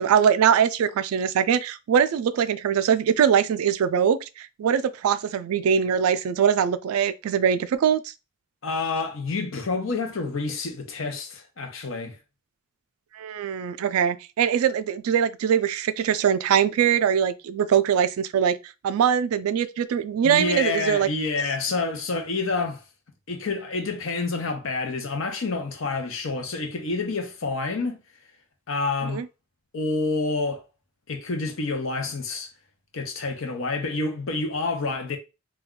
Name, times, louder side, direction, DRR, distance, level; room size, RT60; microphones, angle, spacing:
voice 1, 0.0-8.1 13.1-18.6 18.8-21.1 29.1-29.3, right 8 dB, 90° right, 0.3 m, -22 dB
voice 2, 8.6-12.2 20.2-22.8 23.3-28.0 28.7-29.3 29.7-30.6 31.1-32.5 32.9-35.2, left 3 dB, 70° left, 0.7 m, -28 dB
2.3 x 2.2 x 3.6 m
head